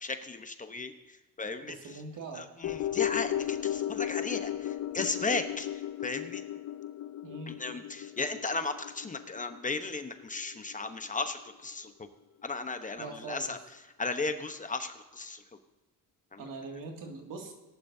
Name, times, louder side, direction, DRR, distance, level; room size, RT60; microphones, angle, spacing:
voice 1, 0.0-0.9 1.4-1.7 2.4-5.7 6.0-6.4 7.5-11.9 12.4-13.6 14.0-15.4 16.3-16.4, left 3 dB, 25° left, 8 dB, 0.9 m, -35 dB
voice 2, 1.6-2.5 7.2-7.6 13.0-13.6 16.4-17.5, right 3 dB, 75° right, 2 dB, 2.2 m, -42 dB
sound 1, 2.6-11.1 11.4-11.5, left 11 dB, 50° left, 0.5 m, -35 dB
18.0 x 11.5 x 2.7 m, 1.1 s
cardioid pair, 100°, 34 cm